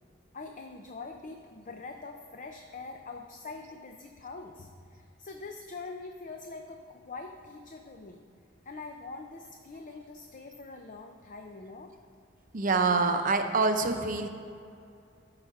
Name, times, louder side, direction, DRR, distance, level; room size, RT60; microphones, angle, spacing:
voice 1, 0.3-8.2 8.7-11.9, left 3 dB, 45° left, 4 dB, 0.6 m, -44 dB
voice 2, 12.5-14.3, right 3 dB, 45° right, 6 dB, 0.7 m, -26 dB
13.5 x 4.9 x 5.9 m, 2.5 s
head